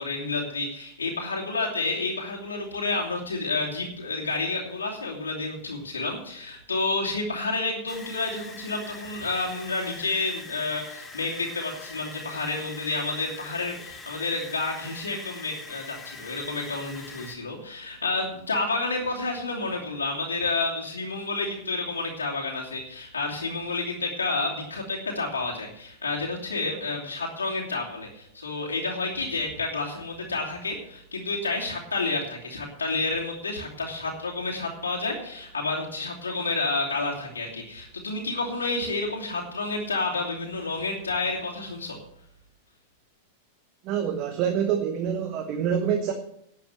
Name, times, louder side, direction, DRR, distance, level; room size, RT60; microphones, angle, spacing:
voice 1, 0.0-42.0, left 3 dB, 85° left, -3 dB, 2.7 m, -30 dB
sound 1, 7.9-17.4, left 3 dB, 15° left, 2.4 m, -44 dB
voice 2, 43.8-46.1, right 8 dB, 45° right, 7 dB, 1.3 m, -26 dB
11.5 x 7.5 x 8.0 m, 0.73 s
figure-of-eight pair, 95°, 0 cm